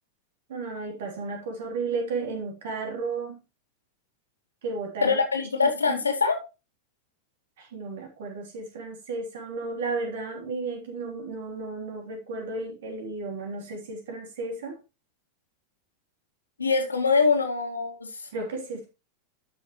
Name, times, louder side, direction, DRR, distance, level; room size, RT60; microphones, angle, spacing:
voice 1, 0.5-3.4 4.6-5.2 5.6-6.0 7.6-14.8 18.3-18.9, right 3 dB, 55° right, 3.2 m, -33 dB
voice 2, 5.0-6.4 16.6-18.3, left 4 dB, 75° left, 2.2 m, -24 dB
12.0 x 6.3 x 3.2 m
figure-of-eight pair, 90°, 0 cm